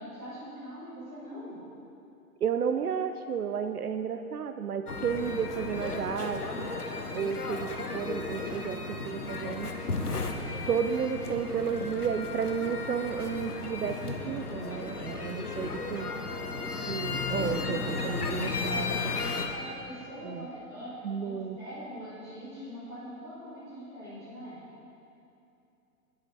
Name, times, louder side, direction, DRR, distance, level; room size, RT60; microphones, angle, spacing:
voice 1, 0.0-1.6 17.3-18.7 19.5-24.6, equal, ahead, -21 dB, 0.3 m, -42 dB
voice 2, 2.4-6.7 7.1-9.7 10.7-16.1 16.9-19.2 20.2-20.5 21.0-21.6, right 7 dB, 80° right, 8 dB, 0.6 m, -32 dB
sound 1, 4.9-19.5, left 3 dB, 90° left, 0.9 m, -34 dB
10.0 x 7.4 x 4.3 m, 2.7 s
figure-of-eight pair, 115°, 44 cm